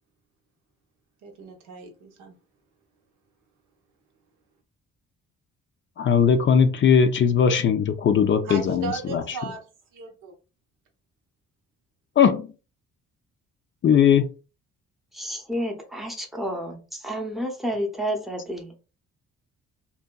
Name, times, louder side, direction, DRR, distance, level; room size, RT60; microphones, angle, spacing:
voice 1, 1.2-2.4 8.4-9.7 9.9-10.3, right 5 dB, 90° right, 0.8 m, -36 dB
voice 2, 6.0-9.2 12.2-12.5 13.8-14.3, left 7 dB, 40° left, 0.4 m, -19 dB
voice 3, 15.1-18.7, equal, ahead, 0.6 m, -30 dB
2.7 x 2.2 x 2.2 m
cardioid pair, 90°, 30 cm